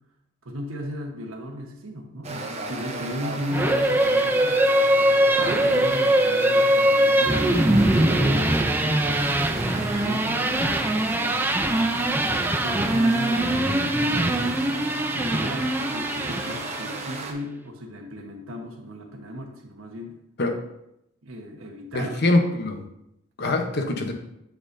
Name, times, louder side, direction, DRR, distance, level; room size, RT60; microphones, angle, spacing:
voice 1, 0.4-4.8 5.4-11.9 12.6-14.6 15.2-20.2 21.2-22.2, equal, 80° right, 2 dB, 1.2 m, -36 dB
sound 1, 2.2-17.3, right 3 dB, 30° right, 0.9 m, -34 dB
sound 2, 3.5-17.1, right 1 dB, 10° right, 0.3 m, -22 dB
voice 2, 21.9-22.8 23.4-24.1, left 2 dB, 55° left, 4 dB, 0.9 m, -23 dB
7.4 x 6.9 x 2.7 m, 0.82 s
head